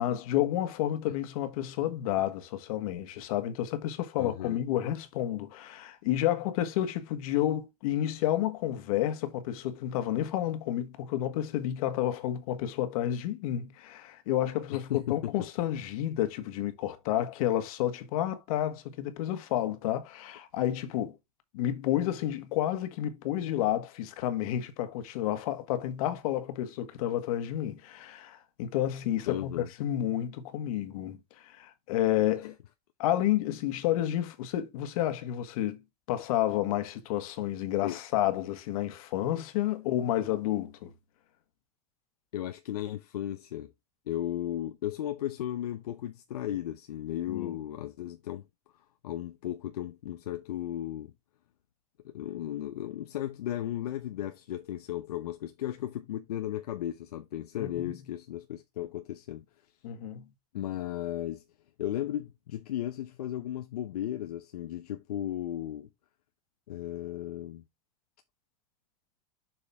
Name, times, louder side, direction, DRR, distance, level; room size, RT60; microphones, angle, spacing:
voice 1, 0.0-21.2 21.5-32.5 33.0-35.8 36.1-40.9 47.3-47.6 57.6-58.0 59.8-60.3, left 12 dB, 65° left, 1.6 m, -30 dB
voice 2, 4.2-4.6 14.9-15.5 29.3-29.7 37.8-38.0 42.3-43.7 44.1-48.4 49.0-51.1 52.0-59.4 60.5-61.4 61.8-65.9 66.7-67.6, left 12 dB, 85° left, 0.7 m, -35 dB
7.3 x 4.9 x 3.5 m
hypercardioid pair, 110°, 20 cm